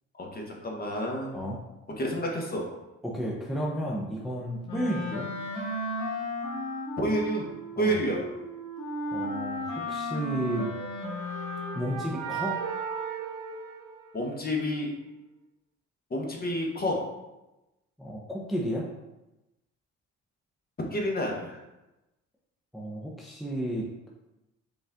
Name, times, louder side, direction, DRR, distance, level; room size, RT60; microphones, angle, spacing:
voice 1, 0.1-1.4 2.0-2.7 7.0-7.5 7.8-8.3 14.1-14.9 16.1-17.1 20.9-21.6, equal, 30° left, 0 dB, 1.0 m, -29 dB
voice 2, 3.0-5.3 7.8-8.0 9.1-10.7 11.7-12.6 18.0-18.9 22.7-23.9, equal, ahead, -3 dB, 0.6 m, -32 dB
Wind instrument woodwind instrument, 4.6-12.1, left 1 dB, 80° left, 1.3 m, -34 dB
sound 1, 10.7-14.6, right 7 dB, 80° right, 0.6 m, -36 dB
5.1 x 2.5 x 3.5 m, 0.99 s
cardioid pair, 90°, 30 cm